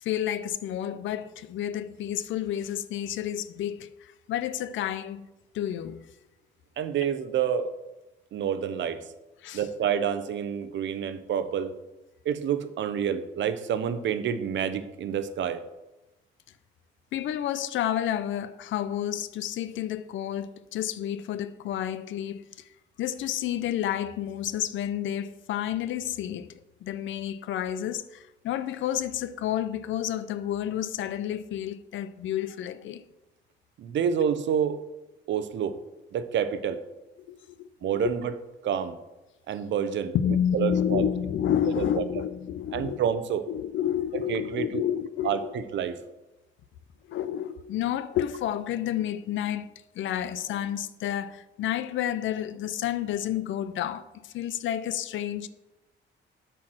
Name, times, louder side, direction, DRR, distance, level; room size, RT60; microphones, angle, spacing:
voice 1, 0.0-5.3 5.5-6.0 9.4-9.6 17.1-22.5 23.0-26.5 26.8-33.0 37.3-38.1 40.1-43.0 43.5-45.5 47.1-49.7 49.9-55.5, left 10 dB, 75° left, 0.6 m, -30 dB
voice 2, 6.8-7.7 8.3-9.0 9.5-11.7 12.2-15.6 33.8-34.8 35.3-35.8 36.1-36.8 37.8-38.3 38.6-39.0 39.5-40.1 40.5-41.1 41.8-42.0 42.7-43.5 44.1-44.8 45.2-46.0, right 8 dB, 70° right, 0.8 m, -28 dB
8.5 x 4.6 x 6.1 m
cardioid pair, 90°, 20 cm